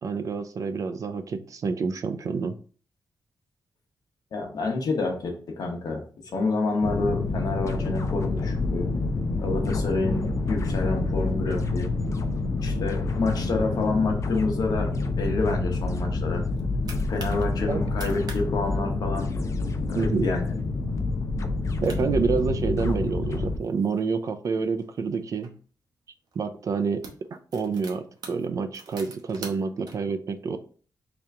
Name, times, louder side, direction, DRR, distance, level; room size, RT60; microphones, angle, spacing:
voice 1, 0.0-2.6 17.7-17.8 20.0-20.3 21.8-25.5 26.4-27.0 27.3-30.6, right 5 dB, 50° right, 10 dB, 0.4 m, -28 dB
voice 2, 4.3-8.9 9.4-11.9 12.6-16.4 17.1-19.3 19.9-20.5, left 3 dB, 60° left, 2 dB, 1.0 m, -28 dB
sound 1, 6.8-23.6, left 3 dB, 45° left, 0.5 m, -27 dB
sound 2, 16.3-17.5 17.8-18.4 18.7-18.8 19.1-19.5 20.0-20.3 20.7-20.8 21.5-21.6 21.8-23.0 23.6-25.5 26.3-26.5 26.8-29.9, right 4 dB, 65° right, 0.9 m, -44 dB
3.3 x 2.9 x 3.7 m, 0.43 s
wide cardioid pair, 130°, 7 cm